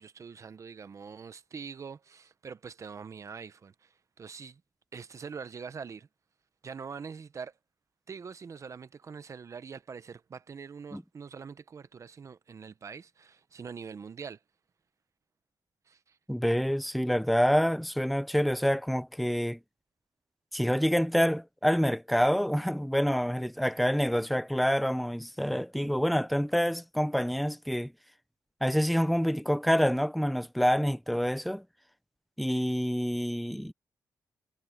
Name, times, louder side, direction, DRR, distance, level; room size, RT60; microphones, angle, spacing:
voice 1, 0.0-4.6 4.9-6.1 6.6-7.5 8.1-14.4 15.9-16.2, right 6 dB, 45° right, 0.8 m, -44 dB
voice 2, 16.3-19.6 20.5-27.9 28.6-31.6 32.4-33.7, equal, ahead, 0.7 m, -27 dB
wide cardioid pair, 120°, 8 cm